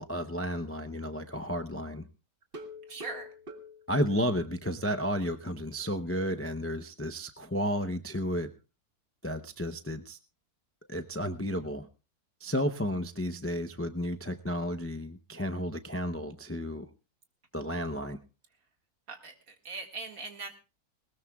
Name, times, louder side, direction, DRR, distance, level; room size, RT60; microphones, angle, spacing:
voice 1, 0.0-2.0 3.9-8.5 9.2-10.2 10.9-11.9 12.4-16.9 17.5-18.2, equal, 20° left, 7 dB, 0.3 m, -32 dB
sound 1, 2.4-5.0 5.3-5.4 5.8-5.9 6.3-6.4, left 1 dB, 40° right, 1.6 m, -46 dB
voice 2, 2.9-3.3 19.1-20.6, right 3 dB, 65° right, 5 dB, 2.4 m, -41 dB
20.5 x 19.0 x 2.3 m, 0.31 s
omnidirectional pair, 1.6 m